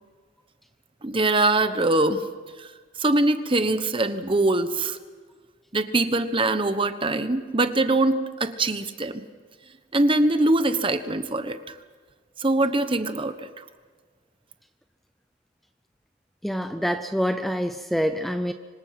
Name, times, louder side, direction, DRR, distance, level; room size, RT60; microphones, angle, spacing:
voice 1, 1.0-2.2 2.6-2.7 3.0-5.0 5.7-9.2 9.9-11.8 12.4-13.6, right 2 dB, 30° right, 10 dB, 1.2 m, -23 dB
voice 2, 16.4-18.5, equal, ahead, 8 dB, 0.6 m, -26 dB
26.0 x 25.0 x 6.0 m, 1.5 s
head